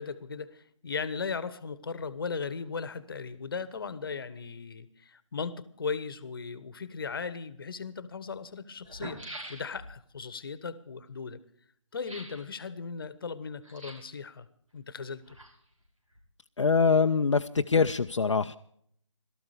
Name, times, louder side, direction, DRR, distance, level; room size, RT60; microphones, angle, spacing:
voice 1, 0.0-11.4 11.9-14.5 14.7-15.4, left 5 dB, 45° left, 16 dB, 1.2 m, -37 dB
sound 1, 7.5-7.6 8.4-8.5 8.8-10.0 12.0-12.5 13.6-14.2 15.0-15.8 16.1-16.2, right 1 dB, 85° right, 6.0 m, -44 dB
voice 2, 16.6-18.6, left 5 dB, 65° left, 6 dB, 0.6 m, -24 dB
17.5 x 13.5 x 4.9 m, 0.64 s
figure-of-eight pair, 155°, 17 cm